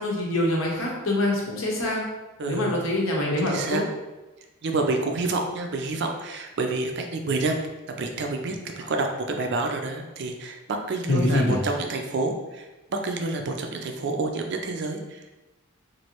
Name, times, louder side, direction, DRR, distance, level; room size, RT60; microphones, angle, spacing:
voice 1, 0.0-2.0 2.5-3.8 8.8-8.9 11.1-11.6, left 1 dB, 70° left, -1 dB, 0.7 m, -25 dB
voice 2, 2.4-2.9 3.4-3.8 4.6-7.6 8.0-8.6 8.9-15.3, right 3 dB, 55° right, 3 dB, 0.4 m, -28 dB
3.1 x 2.6 x 2.9 m, 1.1 s
head